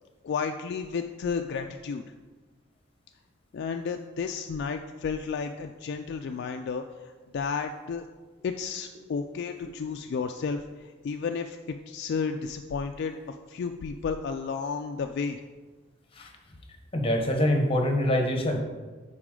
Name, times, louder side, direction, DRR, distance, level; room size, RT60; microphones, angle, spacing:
voice 1, 0.2-2.0 3.5-8.0 8.4-15.4, left 5 dB, 60° left, 5 dB, 0.3 m, -32 dB
voice 2, 16.9-18.6, left 1 dB, 30° left, 4 dB, 0.9 m, -24 dB
9.6 x 4.1 x 3.7 m, 1.3 s
head